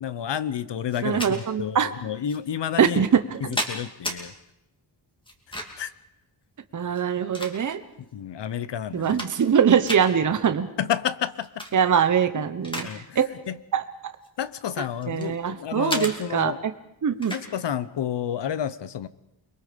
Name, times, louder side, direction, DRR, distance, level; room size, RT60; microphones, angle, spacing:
voice 1, 0.0-3.0 3.7-4.3 5.8-5.9 8.1-9.2 10.8-11.5 12.8-13.0 13.5-13.6 14.4-16.6 17.3-19.1, left 9 dB, 65° left, 15 dB, 0.9 m, -30 dB
sound 1, 0.9-1.3 2.3-2.4 3.1-4.2 5.3-5.9 6.9-7.9 8.5-8.6 8.9-9.6 9.9-10.1 11.4-11.7 12.1-12.9 13.2-13.5 14.2-15.3 15.9-16.1 17.2-17.5, equal, 10° left, 2.6 m, -33 dB
voice 2, 1.0-1.9 2.8-3.6 6.7-7.8 8.9-10.7 11.7-12.9 13.1-13.2 13.7-13.8 14.8-16.7 17.0-17.3, right 7 dB, 40° right, 9 dB, 1.0 m, -23 dB
29.5 x 22.0 x 5.2 m, 0.86 s
wide cardioid pair, 155°, 45 cm